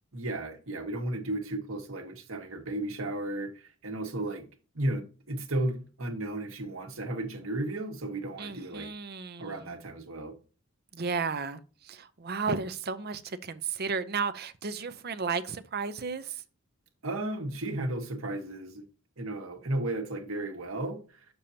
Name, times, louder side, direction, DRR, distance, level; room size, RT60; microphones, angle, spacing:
voice 1, 0.1-4.4 4.7-8.9 9.4-10.3 17.0-18.8 19.2-21.2, right 1 dB, 75° right, 1.5 m, -34 dB
voice 2, 8.4-9.7 10.9-11.6 11.8-16.3, right 5 dB, 50° right, 0.6 m, -33 dB
9.0 x 6.9 x 2.8 m
head